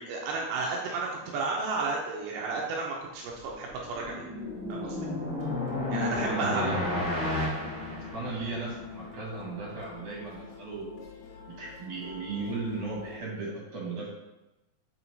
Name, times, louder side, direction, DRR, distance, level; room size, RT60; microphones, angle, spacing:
voice 1, 0.0-4.2 4.7-5.0 5.9-6.6, right 3 dB, 90° right, -2 dB, 2.4 m, -32 dB
sound 1, 3.5-8.7, left 1 dB, 30° left, 1.5 m, -32 dB
sound 2, 4.4-13.2, left 6 dB, 75° left, 2.3 m, -47 dB
voice 2, 6.2-6.8 7.9-10.9 11.5-14.1, right 3 dB, 65° right, -3 dB, 3.0 m, -36 dB
5.6 x 4.4 x 4.1 m, 1.0 s
omnidirectional pair, 3.8 m